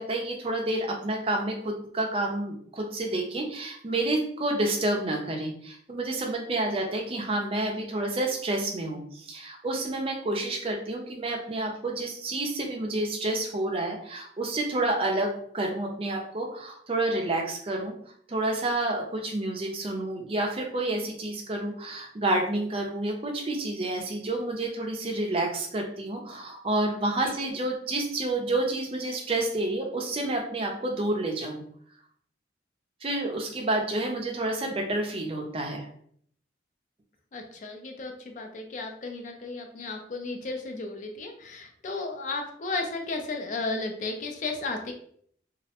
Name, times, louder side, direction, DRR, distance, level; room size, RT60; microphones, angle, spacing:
voice 1, 0.0-17.9 18.3-31.6 33.0-35.9, right 2 dB, 30° right, 1 dB, 0.4 m, -29 dB
voice 2, 37.3-44.9, left 3 dB, 40° left, 4 dB, 0.4 m, -34 dB
2.4 x 2.1 x 2.8 m, 0.62 s
head